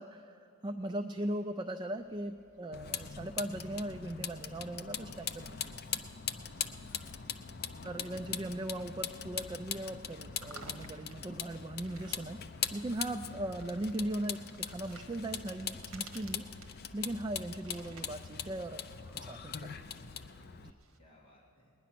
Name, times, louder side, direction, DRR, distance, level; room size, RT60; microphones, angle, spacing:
voice 1, 0.0-5.7 7.8-12.4 12.7-19.7 20.6-20.7, right 1 dB, 20° right, 7 dB, 0.3 m, -39 dB
sound 1, 2.0-21.0, right 3 dB, 70° right, 1.2 m, -59 dB
Vehicle, 2.7-20.7, left 8 dB, 45° left, 0.5 m, -41 dB
voice 2, 6.9-8.4 20.9-21.7, left 1 dB, 25° left, -4 dB, 1.7 m, -63 dB
19.5 x 10.0 x 5.9 m, 2.7 s
head